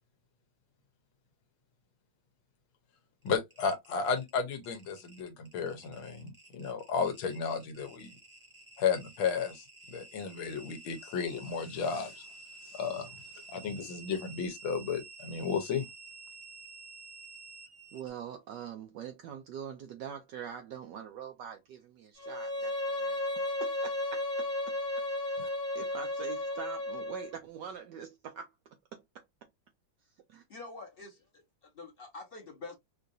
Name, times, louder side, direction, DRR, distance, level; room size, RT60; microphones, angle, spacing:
voice 1, 3.2-8.1 8.8-12.2 12.7-13.1 13.5-15.9 25.4-25.5, left 6 dB, 75° left, 1.6 m, -33 dB
sound 1, 3.2-18.1, right 3 dB, 30° right, 1.0 m, -51 dB
voice 2, 17.9-23.2 23.6-24.8 25.3-25.4 25.7-28.5 28.9-29.2 30.3-30.4, right 8 dB, 75° right, 1.0 m, -44 dB
Bowed string instrument, 22.2-27.3, left 1 dB, 10° left, 1.0 m, -34 dB
voice 3, 30.5-32.8, left 3 dB, 35° left, 1.0 m, -46 dB
4.6 x 2.6 x 2.6 m
omnidirectional pair, 2.3 m